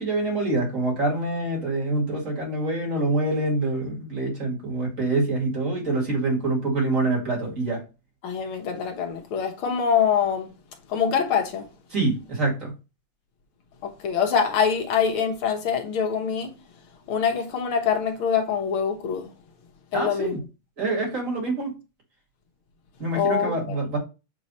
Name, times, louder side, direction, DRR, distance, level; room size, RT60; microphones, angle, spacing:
voice 1, 0.0-7.8 11.9-12.7 19.9-20.4 20.8-21.8 23.0-24.0, right 2 dB, 35° right, 2.5 m, -25 dB
voice 2, 8.2-10.5 10.9-11.7 13.8-16.5 17.1-19.3 19.9-20.4 23.1-23.8, left 7 dB, 80° left, 2.0 m, -24 dB
7.5 x 3.1 x 4.1 m
omnidirectional pair, 2.4 m